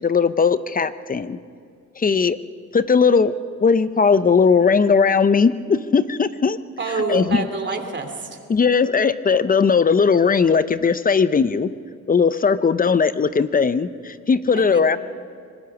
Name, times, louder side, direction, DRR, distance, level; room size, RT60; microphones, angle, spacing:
voice 1, 0.0-1.4 2.0-2.4 2.7-3.3 3.6-6.6 7.1-7.5 8.5-11.7 12.1-15.0, left 5 dB, 30° left, 14 dB, 0.7 m, -18 dB
voice 2, 6.8-8.4 14.7-15.0, right 4 dB, 35° right, 5 dB, 2.8 m, -27 dB
25.0 x 21.0 x 6.0 m, 2.2 s
cardioid pair, 90°, 30 cm